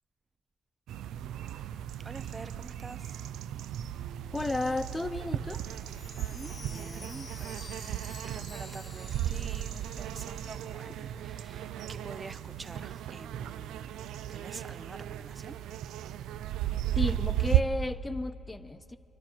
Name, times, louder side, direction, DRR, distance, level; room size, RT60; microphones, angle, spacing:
sound 1, 0.9-17.6, right 12 dB, 85° right, 0.4 m, -35 dB
voice 1, 2.0-3.2 6.3-13.9 14.3-15.6, right 3 dB, 25° right, 0.6 m, -47 dB
voice 2, 4.3-5.6 17.0-19.0, left 2 dB, 15° left, 0.3 m, -33 dB
Chime, 5.5-11.4 11.7-11.8 12.4-12.5, left 3 dB, 40° left, 1.3 m, -51 dB
24.0 x 11.5 x 4.5 m
cardioid pair, 90°, 0 cm